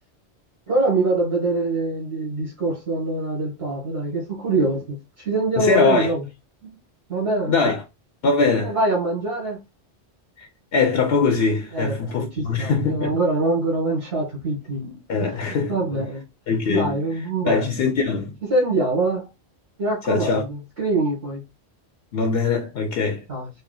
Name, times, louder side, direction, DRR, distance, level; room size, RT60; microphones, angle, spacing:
voice 1, 0.7-6.2 6.6-6.8 7.1-7.6 8.6-9.6 11.7-15.4 15.7-16.2 16.7-17.7 18.4-19.3 19.8-21.4 23.3-23.5, right 2 dB, 65° right, 1.6 m, -24 dB
voice 2, 5.6-6.1 7.5-7.8 8.2-8.8 10.4-13.2 15.1-16.1 16.5-17.0 17.5-18.4 20.1-20.4 22.1-23.2, left 4 dB, 70° left, 0.9 m, -22 dB
4.3 x 2.1 x 3.8 m
omnidirectional pair, 1.1 m